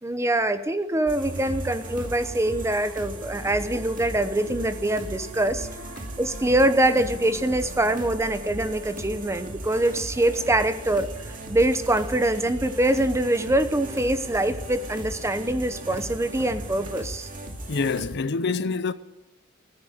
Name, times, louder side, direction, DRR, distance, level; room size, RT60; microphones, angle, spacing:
voice 1, 0.0-5.7 6.2-17.3, right 1 dB, 15° right, 0.9 m, -24 dB
sound 1, 1.1-18.1, right 1 dB, 40° right, 2.5 m, -38 dB
sound 2, 1.2-17.0, right 3 dB, 85° right, 1.0 m, -44 dB
voice 2, 17.7-18.9, left 4 dB, 55° left, 0.6 m, -26 dB
14.5 x 10.0 x 8.9 m
head